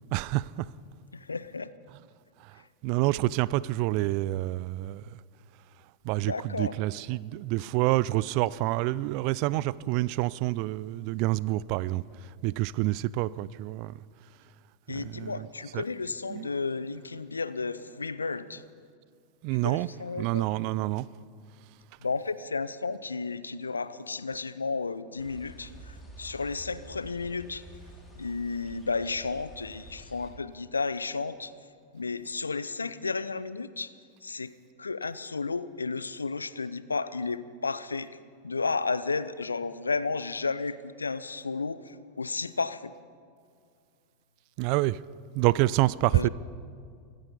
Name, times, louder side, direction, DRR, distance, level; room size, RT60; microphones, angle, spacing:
voice 1, 0.1-0.7 2.4-2.6 2.8-5.2 6.0-12.0 12.4-14.0 14.9-15.5 15.7-15.8 16.3-16.5 19.4-19.9 20.2-21.1 44.6-45.0 45.3-46.3, right 18 dB, 50° right, 21 dB, 0.4 m, -27 dB
voice 2, 1.1-1.7 6.1-6.8 14.9-18.6 19.6-20.5 22.0-27.6 28.2-31.5 31.9-33.9 34.2-34.5 34.8-38.1 38.4-42.9 46.1-46.3, left 4 dB, 80° left, 16 dB, 0.5 m, -33 dB
sound 1, 25.2-30.3, right 1 dB, 5° left, 3.2 m, -49 dB
23.5 x 10.5 x 5.4 m, 2.2 s
figure-of-eight pair, 85°, 0 cm